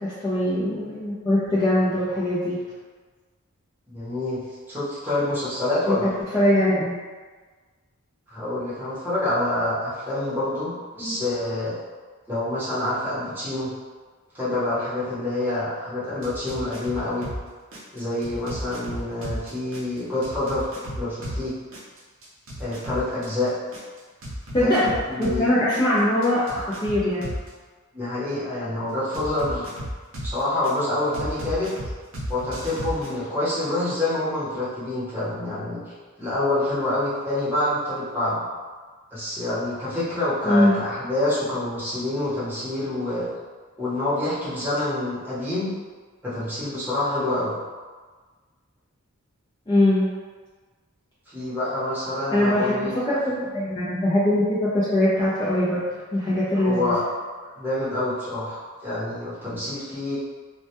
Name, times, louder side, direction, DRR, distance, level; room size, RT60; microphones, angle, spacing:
voice 1, 0.0-2.6 5.9-7.0 11.0-11.1 24.5-24.9 25.2-27.2 40.4-40.7 49.7-50.1 52.3-52.8 53.1-55.8 56.1-56.9, left 1 dB, 20° left, -10 dB, 0.4 m, -22 dB
voice 2, 3.9-4.4 4.7-6.1 8.3-11.8 12.3-13.7 14.3-17.2 17.9-20.7 21.0-21.6 22.6-23.5 24.6-24.7 25.1-25.5 27.9-29.7 30.2-31.7 32.3-35.8 36.2-38.4 39.1-43.3 43.8-45.7 46.2-47.5 51.3-52.9 56.5-57.0 57.6-60.2, left 1 dB, 10° right, -11 dB, 0.8 m, -27 dB
sound 1, 16.2-17.4 17.7-21.4 21.7-25.4 25.7-27.5 29.1-30.7 31.1-33.1, equal, 60° right, 0.6 m, -33 dB
2.2 x 2.1 x 2.8 m, 1.4 s
head